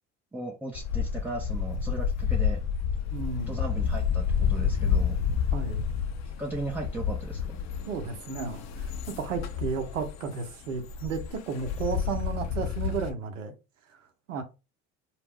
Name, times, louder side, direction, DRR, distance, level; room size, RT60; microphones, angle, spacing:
voice 1, 0.3-2.6 3.5-5.2 6.2-7.6, right 2 dB, 5° right, 0.4 m, -37 dB
sound 1, 0.7-13.1, left 7 dB, 45° left, 0.6 m, -29 dB
voice 2, 3.1-3.6 5.5-5.9 7.9-8.9 9.2-13.5 14.3-14.4, right 5 dB, 90° right, 0.7 m, -33 dB
2.4 x 2.1 x 3.4 m
hypercardioid pair, 70°, 37 cm